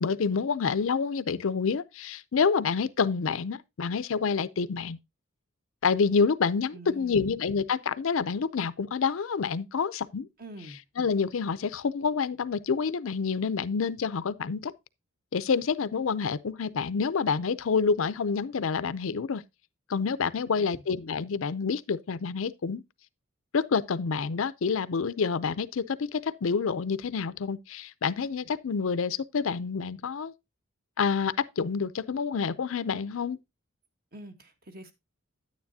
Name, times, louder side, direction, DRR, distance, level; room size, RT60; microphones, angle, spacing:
voice 1, 0.0-5.0 5.8-10.3 11.0-14.7 15.3-19.4 19.9-22.8 23.5-30.3 31.0-33.4, left 5 dB, 70° left, 0.5 m, -28 dB
voice 2, 6.7-7.3 10.4-10.8 20.4-20.8 34.1-34.9, right 1 dB, 45° right, 1.4 m, -46 dB
9.6 x 9.5 x 2.7 m
head